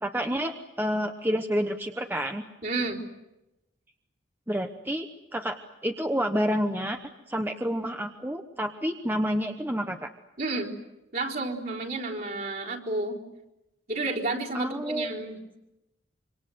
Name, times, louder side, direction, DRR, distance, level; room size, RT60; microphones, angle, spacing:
voice 1, 0.0-2.4 4.5-5.1 5.3-5.6 5.8-7.0 7.3-10.1 14.5-15.1, equal, 10° right, 5 dB, 1.0 m, -29 dB
voice 2, 2.6-3.0 10.4-10.7 11.1-13.2 13.9-15.4, right 2 dB, 50° right, -2 dB, 3.9 m, -31 dB
26.5 x 25.0 x 7.8 m, 0.93 s
head